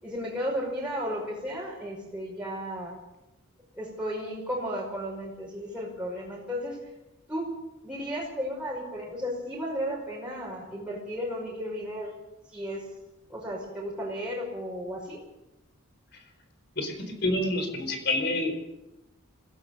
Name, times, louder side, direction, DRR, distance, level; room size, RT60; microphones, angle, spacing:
voice 1, 0.0-2.9 3.7-6.8 7.3-7.5 7.8-12.1 12.5-12.9 13.3-15.2, equal, 5° right, -5 dB, 5.4 m, -34 dB
voice 2, 16.8-18.5, left 1 dB, 50° left, 7 dB, 4.4 m, -28 dB
25.5 x 17.0 x 6.8 m, 0.96 s
head